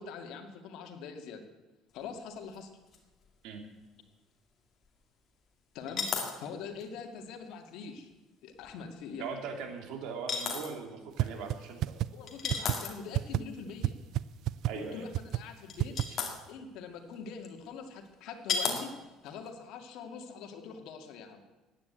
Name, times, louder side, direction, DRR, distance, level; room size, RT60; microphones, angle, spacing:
voice 1, 0.0-1.4 1.9-2.7 5.7-6.0 6.4-8.1 8.4-9.2 12.1-14.0 14.7-16.0 16.5-18.9 19.2-21.4, left 5 dB, 70° left, 5 dB, 2.3 m, -43 dB
sound 1, 2.5-2.6 2.9-3.0 5.9-6.4 6.8-6.9 8.6-8.8 10.3-10.7 12.3-13.1 15.3-15.4 15.7-16.3 17.4-17.5 18.5-18.8 19.3-19.5, left 5 dB, 40° left, 2.4 m, -32 dB
voice 2, 9.2-12.0 14.7-15.1 16.1-16.2, right 5 dB, 75° right, 5 dB, 2.8 m, -40 dB
sound 2, 11.2-11.3 11.5-11.6 11.8-12.1 12.5-12.7 13.1-13.4 13.8-13.9 14.2-14.3 14.5-14.7 15.1-15.4 15.8-16.0, right 14 dB, 55° right, 0.4 m, -27 dB
15.5 x 9.9 x 8.3 m, 1.1 s
cardioid pair, 145°, 0 cm